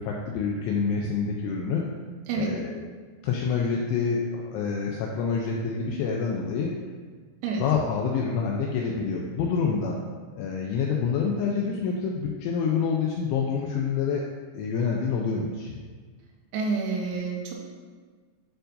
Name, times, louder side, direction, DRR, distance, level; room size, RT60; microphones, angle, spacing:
voice 1, 0.0-1.8 2.4-2.8 3.2-6.7 7.6-10.0 10.3-14.2 14.5-15.8, left 5 dB, 90° left, -1 dB, 2.7 m, -27 dB
voice 2, 16.5-17.5, right 4 dB, 85° right, -1 dB, 3.7 m, -28 dB
11.5 x 4.5 x 2.6 m, 1.5 s
omnidirectional pair, 6.0 m